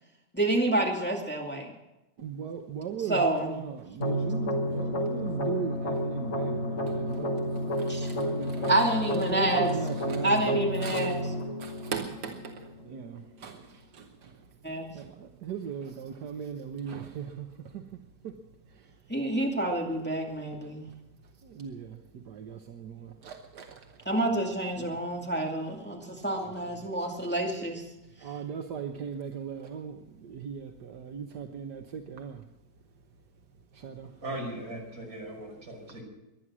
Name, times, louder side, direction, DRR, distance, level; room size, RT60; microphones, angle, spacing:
voice 1, 0.3-1.7 3.1-3.5 7.9-8.1 8.7-9.7 10.2-11.3 14.6-14.9 19.1-20.9 24.1-27.8, right 1 dB, 5° left, 2.3 m, -28 dB
voice 2, 2.2-8.7 9.1-11.2 11.6-14.3 14.9-17.5 17.7-17.8 18.2-18.3 20.6-20.8 21.4-23.8 24.8-24.9 26.4-26.5 28.2-32.4 33.7-34.1, right 7 dB, 80° right, 1.6 m, -38 dB
sound 1, 4.0-13.0, equal, 45° left, 2.2 m, -31 dB
voice 3, 34.2-36.0, right 1 dB, 60° right, 6.0 m, -38 dB
23.0 x 10.0 x 6.2 m
omnidirectional pair, 1.8 m